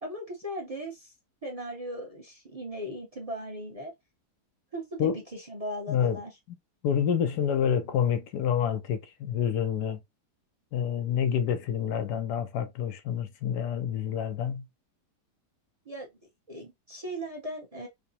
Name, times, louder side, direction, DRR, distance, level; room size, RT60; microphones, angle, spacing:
voice 1, 0.0-1.1 1.4-3.9 4.7-6.4 15.8-16.1 16.5-17.9, equal, 25° right, 0.8 m, -38 dB
voice 2, 6.8-10.0 10.7-14.7, left 8 dB, 80° left, 1.3 m, -28 dB
4.9 x 2.1 x 2.8 m
omnidirectional pair, 1.7 m